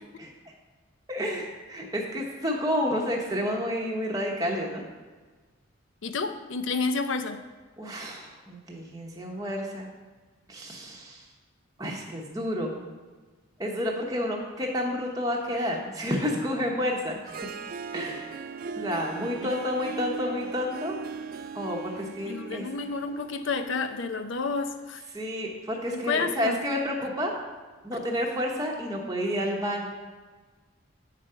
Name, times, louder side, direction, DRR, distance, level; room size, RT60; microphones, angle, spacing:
voice 1, 1.1-4.8 7.8-9.9 10.5-11.3 11.8-12.7 13.6-17.2 17.9-18.3 18.8-21.0 21.5-22.7 25.1-27.3 27.8-29.9, equal, 15° right, -2 dB, 0.9 m, -30 dB
voice 2, 6.0-7.4 19.4-19.5 22.0-25.0 25.9-26.6, left 4 dB, 60° left, 9 dB, 0.5 m, -30 dB
Harp, 17.0-24.1, right 5 dB, 40° right, 0.3 m, -39 dB
8.3 x 4.9 x 5.6 m, 1.4 s
head